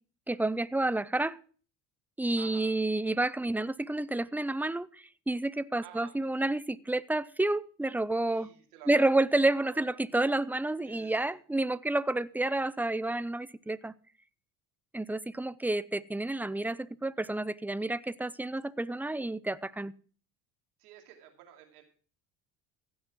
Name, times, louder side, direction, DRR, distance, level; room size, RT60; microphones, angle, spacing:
voice 1, 0.3-1.4 2.2-4.9 5.3-8.5 8.9-13.9 14.9-19.9, right 2 dB, 5° right, 18 dB, 0.5 m, -30 dB
voice 2, 2.4-2.7 5.8-6.1 8.3-9.2 9.5-9.8 10.8-11.3 20.8-21.8, right 11 dB, 85° right, 3 dB, 2.8 m, -52 dB
15.5 x 6.2 x 6.1 m, 0.41 s
hypercardioid pair, 75°, 44 cm